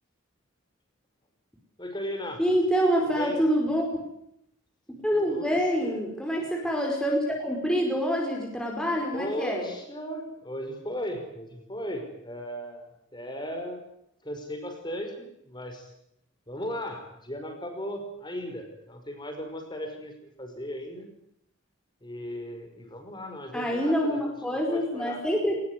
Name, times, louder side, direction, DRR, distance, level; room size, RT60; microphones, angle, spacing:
voice 1, 1.8-2.4 3.0-3.4 5.3-5.5 5.8-6.0 9.1-13.8 14.2-15.9 16.5-20.1 20.4-21.1 22.0-25.2, equal, 20° left, 4 dB, 5.5 m, -36 dB
voice 2, 2.4-3.9 5.0-9.7 23.5-25.6, equal, 5° left, 0 dB, 5.0 m, -26 dB
21.0 x 20.5 x 10.0 m, 0.76 s
head